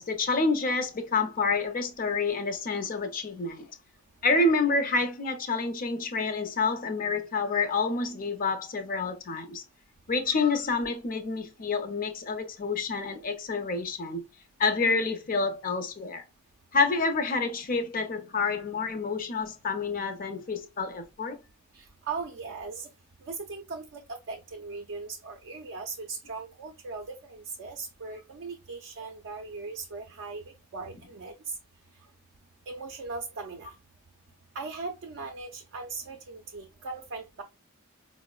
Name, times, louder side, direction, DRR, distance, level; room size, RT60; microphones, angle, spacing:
voice 1, 0.0-3.7 4.2-9.6 10.1-14.2 14.6-16.2 16.7-21.4, left 3 dB, 40° left, 0.6 m, -28 dB
voice 2, 21.7-22.9 23.2-31.6 32.7-33.7 34.5-37.4, right 4 dB, 60° right, 0.4 m, -39 dB
4.5 x 2.0 x 2.3 m
head